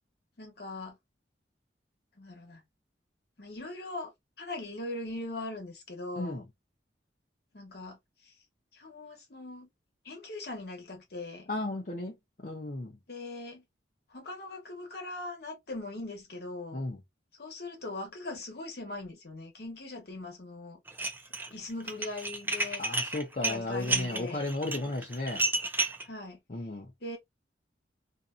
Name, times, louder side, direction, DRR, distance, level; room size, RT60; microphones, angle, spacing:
voice 1, 0.4-1.0 2.2-2.6 3.4-4.1 4.4-6.4 7.5-8.3 8.7-9.7 10.0-11.5 13.1-13.6 14.1-16.8 17.3-20.8 21.5-22.9 23.4-24.4 26.0-26.4 27.0-27.2, left 2 dB, 60° left, 1.1 m, -40 dB
voice 2, 11.5-12.2 12.4-13.0 16.7-17.0 22.8-25.4 26.5-26.9, left 2 dB, 45° left, 0.6 m, -34 dB
Dishes pots and pans, 20.9-21.5 21.8-26.0, right 2 dB, 10° right, 0.4 m, -31 dB
2.6 x 2.3 x 2.5 m
head